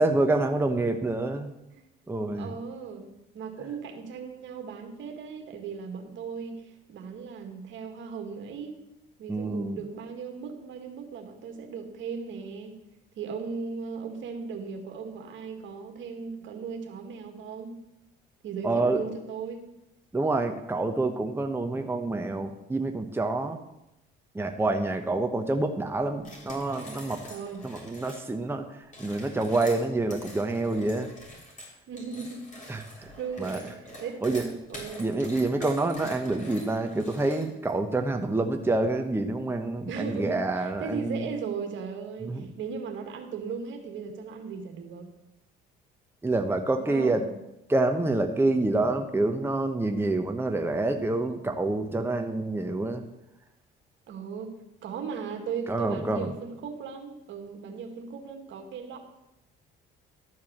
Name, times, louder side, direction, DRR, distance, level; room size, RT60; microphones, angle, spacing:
voice 1, 0.0-1.5 2.1-2.5 9.3-9.8 18.6-19.0 20.1-23.6 24.3-27.2 27.6-31.1 32.7-33.1 33.4-33.6 34.2-34.4 35.0-41.2 42.2-42.5 46.2-47.3 47.7-53.1 55.7-56.3, right 2 dB, 10° right, 5 dB, 1.0 m, -27 dB
voice 2, 2.1-8.8 9.2-12.8 13.2-17.8 18.4-19.7 27.3-27.6 31.9-32.5 33.2-35.2 39.9-45.2 46.8-47.4 54.1-54.5 54.8-59.0, right 5 dB, 65° right, 5 dB, 1.9 m, -37 dB
sound 1, 26.2-28.2 28.8-37.7, left 1 dB, 35° left, 3.7 m, -45 dB
12.5 x 4.7 x 7.3 m, 0.90 s
supercardioid pair, 75°, 21 cm